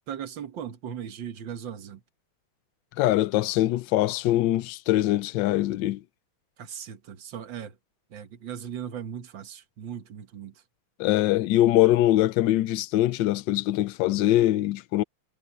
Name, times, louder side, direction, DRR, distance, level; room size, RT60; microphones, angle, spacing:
voice 1, 0.1-2.0 6.6-7.8 8.1-10.5, right 8 dB, 70° right, 2.1 m, -38 dB
voice 2, 3.0-6.0 11.0-15.0, left 15 dB, 70° left, 1.3 m, -23 dB
omnidirectional pair, 2.2 m